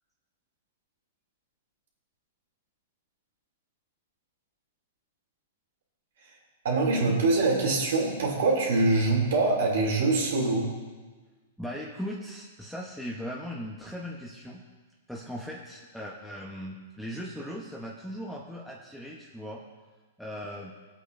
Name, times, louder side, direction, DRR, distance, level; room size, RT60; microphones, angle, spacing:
voice 1, 6.6-10.7, right 3 dB, 75° right, -1 dB, 2.6 m, -24 dB
voice 2, 11.6-14.6 15.1-19.6 20.2-20.7, equal, ahead, -4 dB, 0.9 m, -38 dB
18.0 x 8.3 x 2.6 m, 1.3 s
hypercardioid pair, 140°, 0 cm